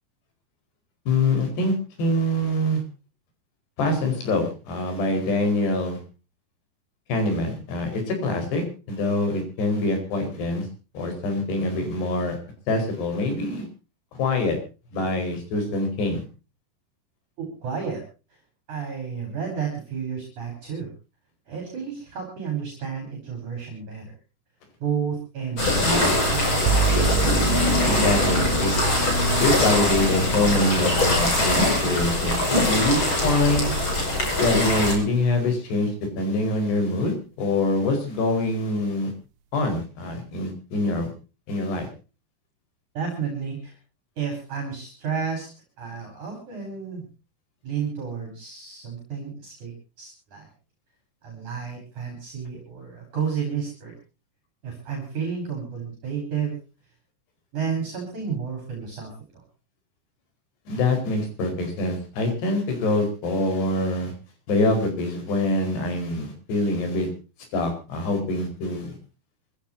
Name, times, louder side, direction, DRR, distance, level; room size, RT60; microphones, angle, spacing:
voice 1, 1.1-2.8 3.8-6.0 7.1-10.7 10.9-12.4 12.7-13.7 14.2-14.6 14.9-16.2 27.9-28.7 29.4-33.8 34.4-39.1 39.5-41.1 41.5-41.9 60.7-64.1 64.5-67.1 67.5-69.0, left 2 dB, 75° left, 6 dB, 6.7 m, -24 dB
voice 2, 17.4-18.0 18.7-20.9 21.5-24.1 24.8-27.2 42.9-43.7 44.2-45.5 45.8-47.0 47.6-49.7 50.0-50.5 51.2-54.0 54.6-56.6 57.5-59.4, right 6 dB, 45° right, 4 dB, 5.9 m, -31 dB
sound 1, 25.6-34.9, left 1 dB, 30° left, 6.6 m, -23 dB
sound 2, 25.6-31.2, left 2 dB, 10° right, 5.7 m, -30 dB
sound 3, 26.7-34.4, right 6 dB, 90° right, 3.2 m, -30 dB
25.0 x 16.0 x 2.7 m, 0.33 s
omnidirectional pair, 4.8 m